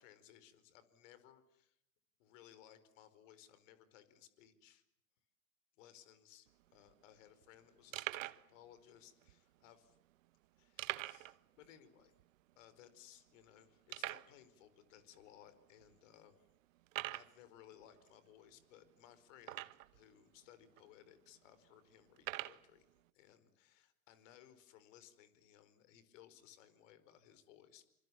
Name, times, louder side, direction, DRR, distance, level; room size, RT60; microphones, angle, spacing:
voice 1, 0.0-1.8 2.2-4.8 5.8-10.0 10.6-12.1 12.6-16.4 17.1-22.9 23.1-27.9, left 11 dB, 55° left, 13 dB, 4.8 m, -62 dB
sound 1, 6.5-6.6 6.7-6.9 7.4-7.5 7.9-8.5 9.2-9.3 10.8-11.4 11.7-11.8 12.2-12.3 12.9-13.0 13.9-14.3 15.1-15.2 15.8-15.9 16.9-17.3 19.4-20.0 20.8-20.9 22.2-22.6, right 17 dB, 60° right, 1.3 m, -43 dB
29.0 x 26.5 x 7.3 m, 0.79 s
hypercardioid pair, 105°, 44 cm